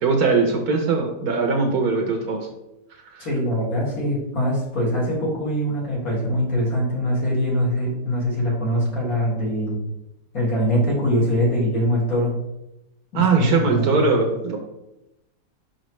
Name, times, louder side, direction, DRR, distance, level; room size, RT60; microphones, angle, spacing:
voice 1, 0.0-2.5 3.1-3.3 13.1-14.6, right 4 dB, 65° right, 3 dB, 1.2 m, -20 dB
voice 2, 3.2-9.8 10.3-12.3 13.1-13.9, equal, 50° left, -5 dB, 2.3 m, -23 dB
5.9 x 5.2 x 3.0 m, 0.91 s
omnidirectional pair, 1.9 m